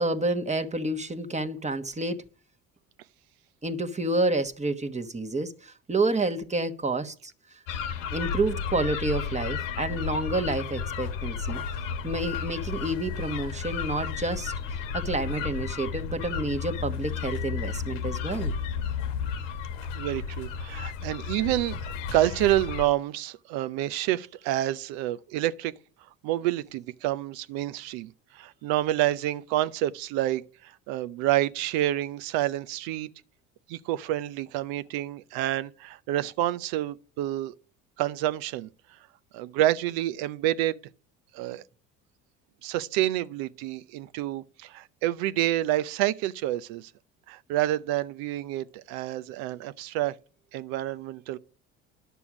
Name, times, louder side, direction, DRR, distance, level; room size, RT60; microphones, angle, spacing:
voice 1, 0.0-2.2 3.6-7.3 8.1-11.6 12.0-14.5 14.9-18.5, right 2 dB, 20° right, 1.2 m, -29 dB
sound 1, 7.7-22.9, left 6 dB, 85° left, 1.3 m, -33 dB
voice 2, 19.9-21.8 22.1-25.7 26.2-33.1 33.7-37.5 38.0-38.7 39.3-40.8 41.3-41.6 42.6-46.9 47.3-50.2 50.5-51.4, right 14 dB, 70° right, 0.7 m, -28 dB
11.0 x 6.9 x 4.9 m
hypercardioid pair, 70°, 37 cm